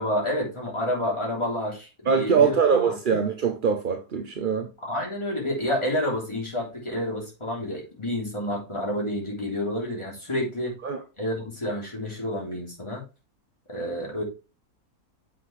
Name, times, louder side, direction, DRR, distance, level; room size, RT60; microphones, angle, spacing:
voice 1, 0.0-2.9 4.8-10.8 11.2-13.0 13.7-14.2, left 1 dB, 15° left, 3.4 m, -29 dB
voice 2, 2.1-4.7 10.8-11.0, right 6 dB, 45° right, 0.7 m, -23 dB
7.5 x 5.8 x 3.3 m
omnidirectional pair, 1.7 m